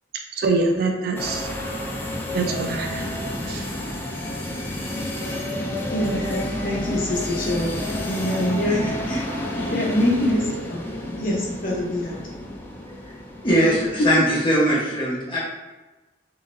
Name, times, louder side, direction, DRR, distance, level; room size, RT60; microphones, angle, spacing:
voice 1, 0.4-1.5 2.3-3.1 3.5-3.7, right 3 dB, 55° right, 3 dB, 0.4 m, -24 dB
sound 1, 1.2-14.0, left 1 dB, 10° left, 0.4 m, -30 dB
voice 2, 5.9-9.0 9.7-10.9 11.2-12.2, left 1 dB, 50° left, -3 dB, 0.7 m, -25 dB
voice 3, 8.7-9.2 9.5-9.7 13.0-13.1 13.4-15.4, equal, 25° left, -8 dB, 1.1 m, -21 dB
3.7 x 3.0 x 2.6 m, 1.1 s
head